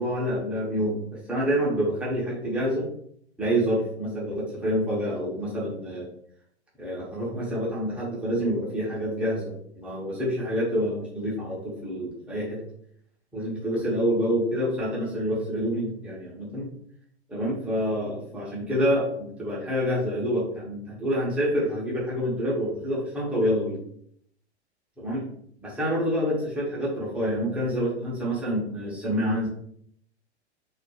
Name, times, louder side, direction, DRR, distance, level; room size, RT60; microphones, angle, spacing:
voice 1, 0.0-2.9 3.4-6.1 6.8-12.6 13.3-16.7 17.3-23.8 25.0-25.2 25.6-29.5, equal, 5° right, -6 dB, 0.3 m, -27 dB
2.2 x 2.1 x 2.7 m, 0.68 s
figure-of-eight pair, 105°, 34 cm